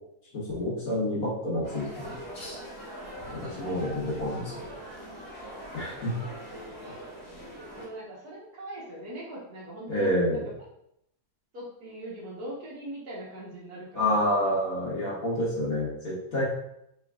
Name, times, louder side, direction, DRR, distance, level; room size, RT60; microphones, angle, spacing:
voice 1, 0.3-2.6 3.3-4.5 5.7-6.1 9.9-10.4 14.0-16.4, equal, 55° left, -7 dB, 1.8 m, -28 dB
sound 1, 1.6-7.9, equal, 20° left, 1.5 m, -42 dB
voice 2, 2.9-3.2 7.7-10.4 11.5-14.5, equal, 60° right, -6 dB, 1.7 m, -41 dB
4.5 x 4.2 x 2.4 m, 0.79 s
omnidirectional pair, 1.9 m